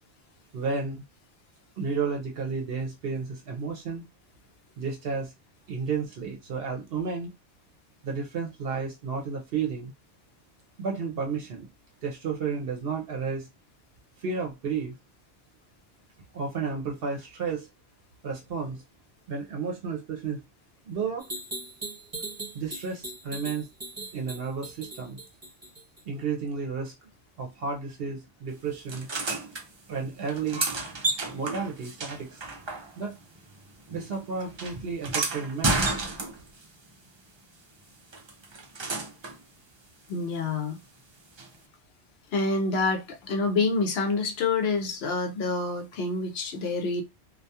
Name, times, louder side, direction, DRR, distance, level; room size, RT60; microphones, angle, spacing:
voice 1, 0.5-1.0 1.8-4.0 4.8-5.3 5.7-7.3 8.0-9.9 10.8-11.7 12.0-13.5 14.2-14.9 16.3-17.7 18.2-18.8 19.3-20.4 20.9-21.3 22.5-23.7 24.1-25.2 26.1-26.9 27.4-29.1 29.9-30.6 31.3-32.4 33.0-33.1 33.9-35.9, right 5 dB, 65° right, 0.7 m, -32 dB
sound 1, 21.2-26.0, right 2 dB, 25° right, 1.1 m, -39 dB
sound 2, 28.9-29.6 30.2-33.2 33.5-36.6 38.1-39.4 41.4-41.5, right 3 dB, 50° right, 0.3 m, -31 dB
voice 2, 40.1-40.8 42.3-47.0, left 3 dB, 70° left, 0.8 m, -27 dB
2.3 x 2.2 x 2.7 m
omnidirectional pair, 1.1 m